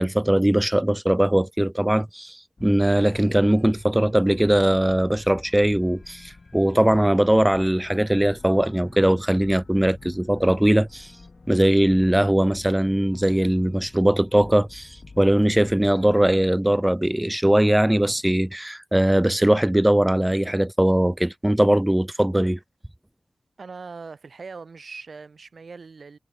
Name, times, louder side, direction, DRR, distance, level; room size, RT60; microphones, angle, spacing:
voice 1, 0.0-11.1 11.5-22.6, right 1 dB, 10° right, 0.4 m, -20 dB
sound 1, 2.6-16.5, left 3 dB, 55° left, 1.3 m, -47 dB
voice 2, 23.6-26.2, right 4 dB, 70° right, 2.4 m, -40 dB
wide cardioid pair, 65°, 0 cm